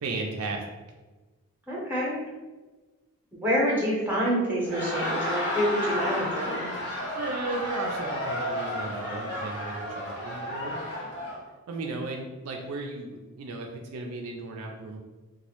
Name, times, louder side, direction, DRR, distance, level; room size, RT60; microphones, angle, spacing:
voice 1, 0.0-0.6 7.1-10.8 11.7-15.0, right 3 dB, 70° right, 1 dB, 0.3 m, -35 dB
voice 2, 1.7-2.2 3.4-6.6, equal, 10° right, -6 dB, 0.6 m, -27 dB
Laughter, 4.5-11.4, equal, 50° left, 0.6 m, -32 dB
2.1 x 2.0 x 2.9 m, 1.2 s
head